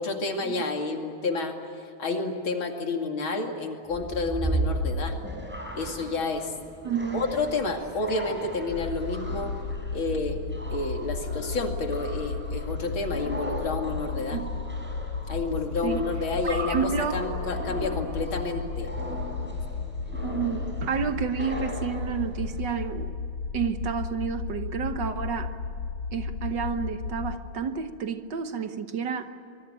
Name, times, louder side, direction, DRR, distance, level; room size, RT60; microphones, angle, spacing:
voice 1, 0.0-1.5 2.0-5.1 5.8-6.5 7.1-9.5 9.9-10.4 10.7-14.4 15.3-18.9, left 3 dB, 75° left, 3 dB, 3.2 m, -30 dB
sound 1, 3.9-22.6, right 1 dB, 5° right, 6.1 m, -37 dB
voice 2, 6.8-7.2 14.3-14.5 15.8-16.0 16.5-17.2 20.2-23.1 23.5-25.5 26.1-29.3, right 6 dB, 60° right, 9 dB, 1.7 m, -30 dB
sound 2, 8.7-27.4, left 5 dB, 45° left, 2.5 m, -34 dB
25.5 x 22.0 x 8.9 m, 2.5 s
omnidirectional pair, 2.3 m